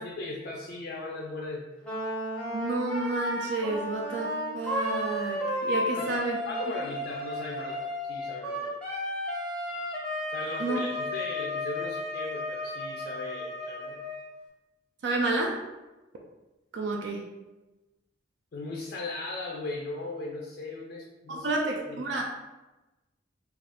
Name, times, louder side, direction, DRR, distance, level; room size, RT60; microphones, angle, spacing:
voice 1, 0.0-1.7 5.9-8.7 10.3-14.0 18.5-21.5 21.8-22.1, left 2 dB, 55° left, -1 dB, 0.3 m, -38 dB
Wind instrument woodwind instrument, 1.8-14.3, left 1 dB, 5° left, 0.6 m, -33 dB
voice 2, 2.5-6.4 10.6-10.8 15.0-15.6 16.7-17.2 21.3-22.2, right 2 dB, 60° right, 0 dB, 0.4 m, -30 dB
2.5 x 2.3 x 3.3 m, 1.1 s
head